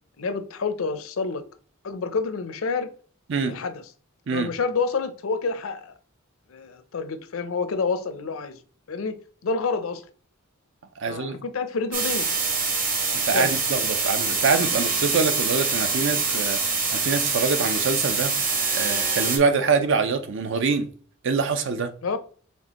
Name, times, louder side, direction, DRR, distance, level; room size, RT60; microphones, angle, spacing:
voice 1, 0.2-1.4 1.8-2.9 3.5-3.8 4.3-5.9 6.5-8.6 8.9-9.2 9.4-10.0 11.1-12.4 13.3-13.5 22.0-22.2, left 4 dB, 75° left, 0.6 m, -28 dB
voice 2, 11.0-11.4 13.1-16.6 16.9-18.3 18.7-20.9 21.2-21.9, right 4 dB, 65° right, 0.6 m, -24 dB
sound 1, 11.9-19.4, right 4 dB, 40° right, 1.2 m, -25 dB
4.5 x 3.5 x 3.0 m
head